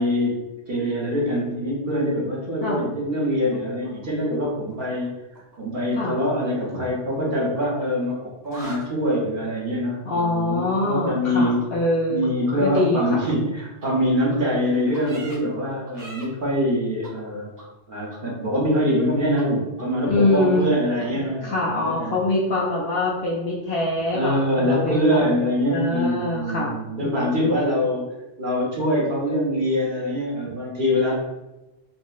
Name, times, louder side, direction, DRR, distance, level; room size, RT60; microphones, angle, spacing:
voice 1, 0.0-5.2 5.6-8.2 8.4-11.7 12.1-17.5 17.9-22.2 24.1-28.1 28.4-31.1, equal, 50° right, -4 dB, 0.9 m, -24 dB
sound 1, 3.5-5.0 5.3-5.6 6.6-8.1 8.4-8.8 11.6-11.7 12.2-12.3 12.7-12.8 13.2-13.3 13.8-13.9 14.3-14.4 14.9-15.4 15.9-16.2 17.0-17.1 17.6-17.7 18.1-18.2 18.5-19.1 19.4-19.5 19.8-19.9 20.2-20.3 20.6-20.7 21.0-21.1, right 1 dB, 20° right, 0.7 m, -42 dB
voice 2, 10.1-12.3 12.6-13.2 20.0-20.6 21.4-25.3 25.7-26.7 27.0-27.5, left 2 dB, 65° left, -5 dB, 0.7 m, -24 dB
4.1 x 2.1 x 2.3 m, 1.0 s
omnidirectional pair, 1.2 m